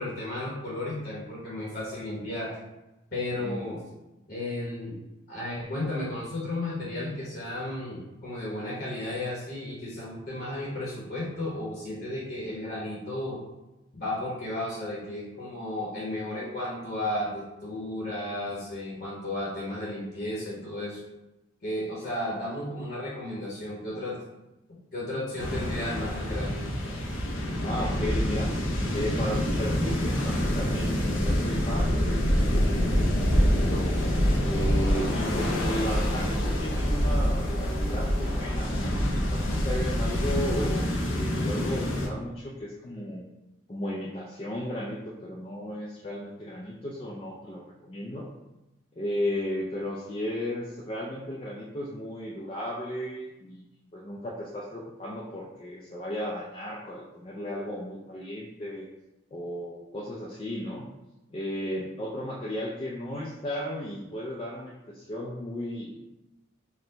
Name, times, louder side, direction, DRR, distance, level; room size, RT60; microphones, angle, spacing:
voice 1, 0.0-2.6 3.1-3.8 4.3-5.0 5.3-13.4 13.9-21.0 21.6-24.2 24.9-26.7, left 1 dB, 50° left, -5 dB, 0.9 m, -33 dB
sound 1, 25.4-42.1, equal, 75° left, 0.7 m, -26 dB
voice 2, 27.6-28.5 28.9-32.7 33.1-33.9 34.5-40.8 41.1-43.2 43.7-48.3 48.9-53.6 53.9-58.9 59.3-60.9 61.3-66.0, left 1 dB, 30° left, -3 dB, 0.3 m, -35 dB
4.3 x 2.1 x 3.8 m, 0.98 s
head